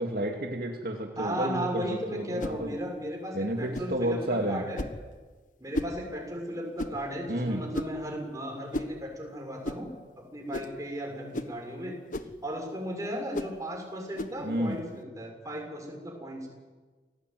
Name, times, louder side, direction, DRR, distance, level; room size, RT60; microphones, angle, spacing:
voice 1, 0.0-2.8 3.3-4.7 7.3-7.6 14.4-14.8, right 1 dB, 55° right, 2 dB, 2.4 m, -31 dB
voice 2, 1.2-4.8 5.6-11.9 12.4-16.5, equal, 20° right, 1 dB, 6.6 m, -36 dB
sound 1, 2.4-2.6 3.7-4.0 4.8-5.0 5.7-6.0 6.8-7.0 7.7-8.0 8.7-9.0 9.6-9.8 10.5-10.8 11.3-11.6 12.1-12.4 13.3-13.6 14.2-14.4, left 1 dB, 50° left, 1.3 m, -34 dB
28.5 x 18.5 x 9.5 m, 1.4 s
head